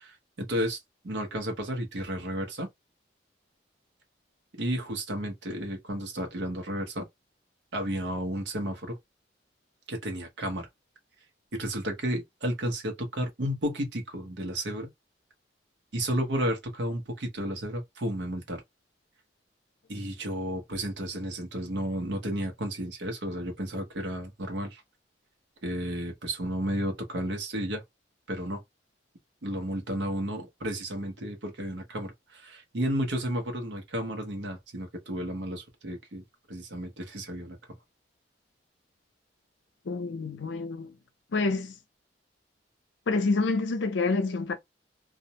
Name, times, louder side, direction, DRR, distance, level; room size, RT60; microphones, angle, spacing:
voice 1, 0.0-2.7 4.6-7.1 7.7-9.0 9.9-10.7 11.5-14.9 15.9-18.6 19.9-24.8 25.6-27.8 28.3-28.6 29.4-37.6, equal, 80° right, 0.9 m, -32 dB
voice 2, 39.9-40.9 41.3-41.7 43.1-44.6, left 3 dB, 85° left, 0.5 m, -27 dB
2.5 x 2.0 x 2.8 m
head